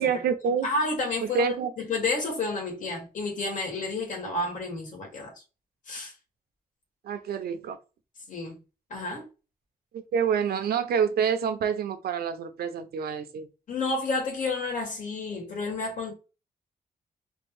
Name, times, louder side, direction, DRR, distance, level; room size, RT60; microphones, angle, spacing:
voice 1, 0.0-0.7 1.3-1.7 7.0-7.8 9.9-13.5, right 7 dB, 80° right, 0.7 m, -27 dB
voice 2, 0.6-5.3 5.9-6.1 8.3-8.6 8.9-9.2 13.7-16.1, left 3 dB, 55° left, 2.0 m, -30 dB
4.4 x 2.6 x 3.4 m
wide cardioid pair, 170°, 16 cm